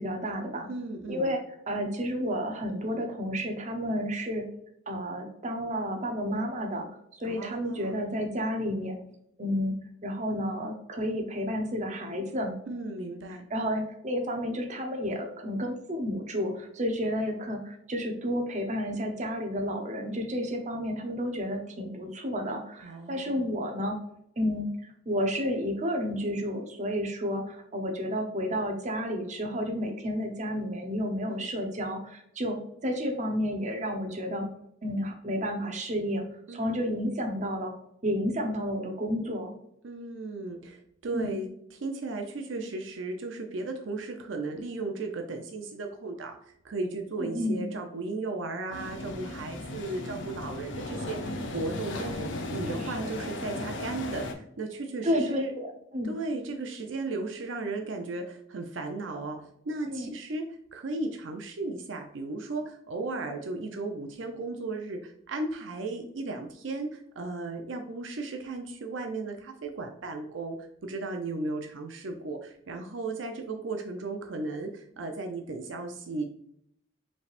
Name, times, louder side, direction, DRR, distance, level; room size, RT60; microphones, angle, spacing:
voice 1, 0.0-0.7 1.1-1.4 1.7-4.5 4.9-9.0 9.4-9.7 10.0-12.5 13.5-24.0 24.4-34.5 34.8-37.7 38.0-39.5 41.1-41.3 47.2-47.6 52.7-53.1 55.0-56.1 59.8-60.1, equal, 40° right, 3 dB, 0.8 m, -31 dB
voice 2, 0.7-1.3 7.2-8.0 12.7-13.5 22.8-23.5 31.3-31.6 36.5-36.9 39.8-55.5 56.0-76.2, right 3 dB, 80° right, 4 dB, 0.6 m, -35 dB
sound 1, 48.7-54.3, left 2 dB, 70° left, 0.7 m, -36 dB
5.1 x 3.3 x 2.5 m, 0.73 s
head